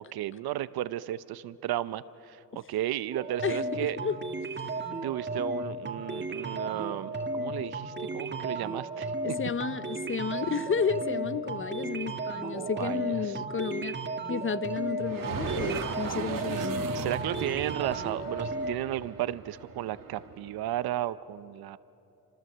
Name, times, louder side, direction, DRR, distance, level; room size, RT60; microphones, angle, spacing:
voice 1, 0.0-4.0 5.0-9.1 12.4-13.4 16.1-16.3 16.6-21.8, right 13 dB, 85° right, 15 dB, 0.8 m, -34 dB
sound 1, 3.1-18.7, right 2 dB, 30° right, 1.9 m, -34 dB
voice 2, 3.4-4.2 9.2-14.0 14.3-16.8, left 6 dB, 35° left, 13 dB, 0.9 m, -32 dB
sound 2, 15.0-20.7, right 6 dB, 65° right, 1.9 m, -37 dB
28.5 x 26.0 x 8.0 m, 2.9 s
cardioid pair, 95°, 36 cm